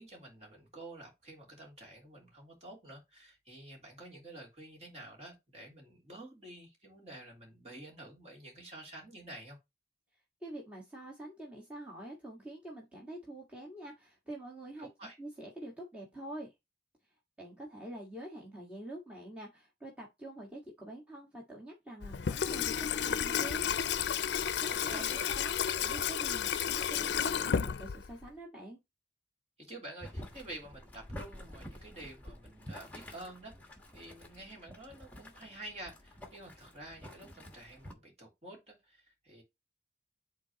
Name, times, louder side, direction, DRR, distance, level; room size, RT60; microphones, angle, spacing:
voice 1, 0.0-9.6 14.8-15.2 24.5-25.2 29.6-39.4, right 1 dB, 35° right, 3.0 m, -49 dB
voice 2, 10.4-14.9 15.2-16.5 17.4-23.6 24.6-25.1 25.4-28.8, right 1 dB, 5° right, 1.6 m, -46 dB
Water tap faucet / Sink (filling or washing), 22.0-28.3, left 8 dB, 75° left, 0.4 m, -32 dB
Boiling, 30.0-37.9, left 1 dB, 10° left, 1.2 m, -49 dB
8.6 x 4.0 x 2.9 m
head